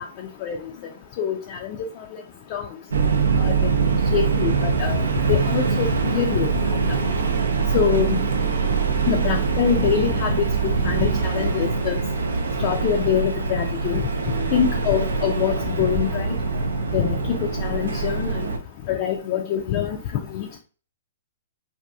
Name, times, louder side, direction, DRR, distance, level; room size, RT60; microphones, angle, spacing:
voice 1, 0.2-0.6 1.2-1.8 2.1-2.2 2.5-2.7 3.4-3.7 4.1-5.0 5.3-6.7 7.7-8.2 9.1-12.0 12.6-14.1 14.5-16.4 16.9-18.5 18.9-20.5, left 8 dB, 45° left, 2 dB, 0.4 m, -24 dB
sound 1, 2.9-18.6, right 5 dB, 85° right, 0.5 m, -23 dB
2.6 x 2.6 x 2.3 m, 0.38 s
hypercardioid pair, 130°, 0 cm